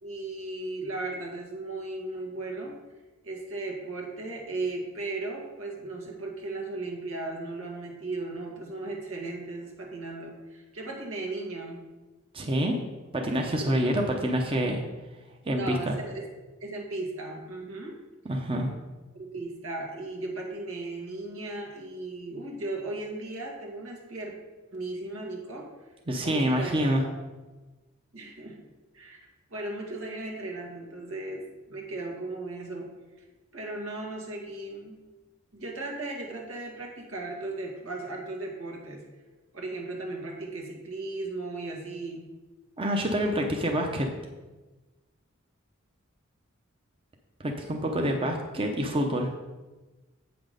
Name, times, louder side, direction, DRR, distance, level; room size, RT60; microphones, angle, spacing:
voice 1, 0.0-2.8 3.2-11.9 13.6-13.7 15.5-16.3 16.6-18.0 19.1-24.3 24.7-25.7 26.2-27.1 28.1-28.6 28.9-29.2 29.5-32.9 33.5-35.0 35.5-39.0 39.5-42.3, right 2 dB, 85° right, 0 dB, 1.9 m, -36 dB
voice 2, 12.3-12.8 13.1-14.8 15.5-15.9 18.2-18.7 26.1-27.0 42.8-44.1 47.4-49.3, equal, 25° right, 2 dB, 0.7 m, -27 dB
8.2 x 6.1 x 5.1 m, 1.2 s
head